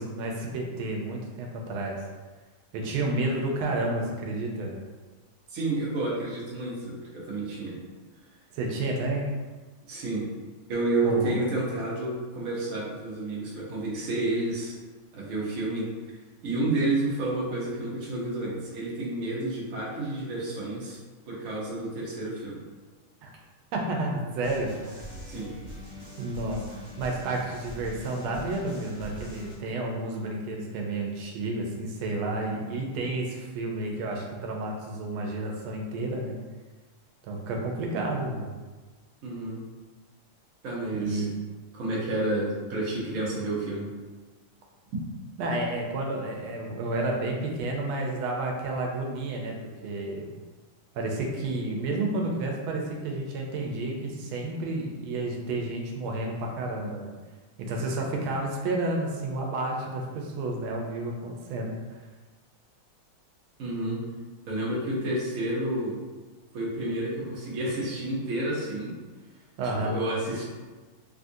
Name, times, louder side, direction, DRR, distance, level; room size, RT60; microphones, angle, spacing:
voice 1, 0.0-2.0 2.7-4.8 8.5-9.2 11.0-11.4 23.2-23.3 23.7-25.0 26.2-26.6 27.0-36.4 37.3-38.5 40.9-41.3 45.4-49.5 49.8-50.3 50.9-57.1 57.6-61.7 69.6-70.0, right 2 dB, 85° right, 0 dB, 1.4 m, -31 dB
voice 2, 5.5-7.8 9.8-10.3 10.7-14.8 15.1-15.9 16.4-21.0 21.3-22.6 25.2-25.5 39.2-39.6 40.6-41.3 41.7-43.9 63.6-64.0 64.5-66.0 66.5-69.0 69.8-70.4, right 2 dB, 55° right, -5 dB, 1.0 m, -30 dB
sound 1, 24.4-29.5, left 1 dB, 10° right, 1.1 m, -43 dB
3.7 x 2.4 x 2.6 m, 1.3 s
omnidirectional pair, 2.3 m